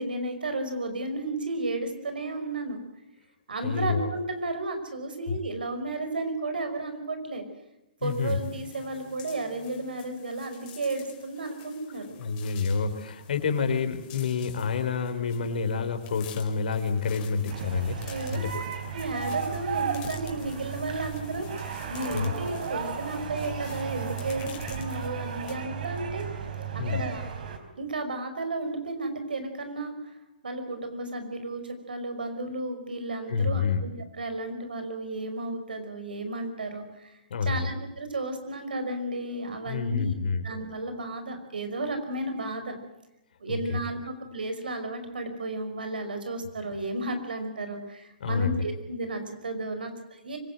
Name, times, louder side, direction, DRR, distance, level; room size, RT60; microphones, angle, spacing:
voice 1, 0.0-2.8 3.5-7.4 8.0-12.2 18.0-18.4 18.9-26.3 26.9-27.2 27.8-30.0 30.4-42.8 43.4-50.4, right 2 dB, 90° right, 8 dB, 5.2 m, -33 dB
voice 2, 3.6-4.1 5.3-5.4 8.0-8.4 12.2-18.0 18.3-18.5 22.1-22.3 26.8-27.0 33.3-33.8 37.3-37.7 39.7-40.4 43.5-43.6 48.2-48.6, left 5 dB, 70° left, 7 dB, 4.1 m, -28 dB
sound 1, 8.0-25.6, left 9 dB, 35° left, 4.1 m, -49 dB
sound 2, 17.5-27.6, right 7 dB, 65° right, 4.2 m, -34 dB
24.5 x 18.0 x 7.8 m, 0.94 s
hypercardioid pair, 140°, 5 cm